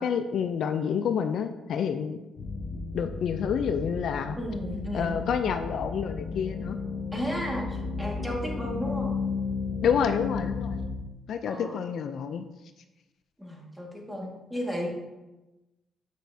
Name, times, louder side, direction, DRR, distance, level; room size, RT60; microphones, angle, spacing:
voice 1, 0.0-2.2 2.9-4.4 4.9-6.8 9.8-10.8 11.3-12.5, left 7 dB, 65° left, 8 dB, 0.4 m, -28 dB
sound 1, 2.4-10.9, left 4 dB, 40° left, 1.2 m, -34 dB
voice 2, 4.4-5.3 7.1-9.2 11.5-11.8 13.4-14.9, equal, 5° right, -1 dB, 1.8 m, -34 dB
8.1 x 6.2 x 2.7 m, 1.0 s
cardioid pair, 90°, 0 cm